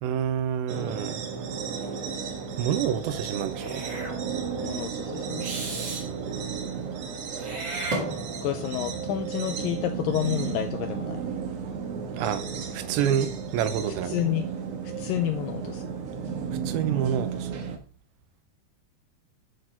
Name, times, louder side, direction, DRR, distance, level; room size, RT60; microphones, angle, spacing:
voice 1, 0.0-1.2 2.6-3.8 12.2-12.5 12.7-14.2 16.5-17.6, right 9 dB, 80° right, 2.5 m, -28 dB
sound 1, 0.7-17.8, right 6 dB, 60° right, 1.7 m, -33 dB
Meow / Hiss, 3.5-4.2 5.4-6.0 7.4-8.6, right 2 dB, 35° right, 2.2 m, -34 dB
voice 2, 4.6-5.5 8.4-11.2 14.0-14.4 15.0-15.9, left 12 dB, 90° left, 2.0 m, -29 dB
8.7 x 6.4 x 4.4 m
omnidirectional pair, 4.6 m